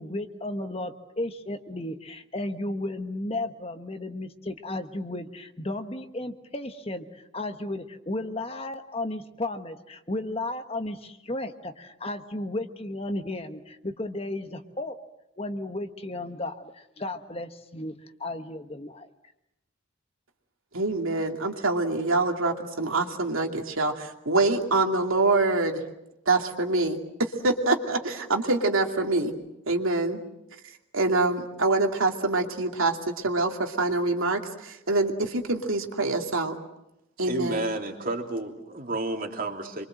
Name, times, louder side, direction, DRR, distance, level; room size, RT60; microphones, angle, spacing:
voice 1, 0.0-15.0 15.4-17.9 18.2-19.1, left 1 dB, 30° left, 7 dB, 1.4 m, -34 dB
voice 2, 20.7-25.8 26.3-29.3 29.7-30.2 30.9-36.6 37.2-37.7, right 2 dB, 80° right, 3 dB, 2.7 m, -25 dB
voice 3, 37.2-39.8, right 2 dB, 40° right, 3 dB, 3.0 m, -31 dB
27.0 x 24.0 x 7.8 m, 0.85 s
head